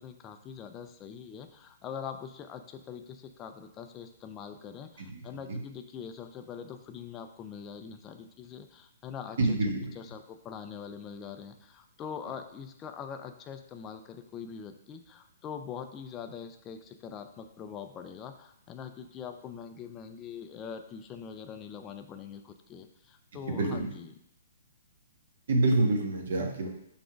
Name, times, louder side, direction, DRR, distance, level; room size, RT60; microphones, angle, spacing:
voice 1, 0.0-9.6 10.0-24.1, left 7 dB, 15° left, 7 dB, 0.4 m, -43 dB
voice 2, 5.0-5.6 9.4-9.9 23.4-23.9 25.5-26.7, right 2 dB, 55° right, 2 dB, 1.3 m, -27 dB
6.0 x 3.5 x 5.0 m, 0.75 s
hypercardioid pair, 170°, 0 cm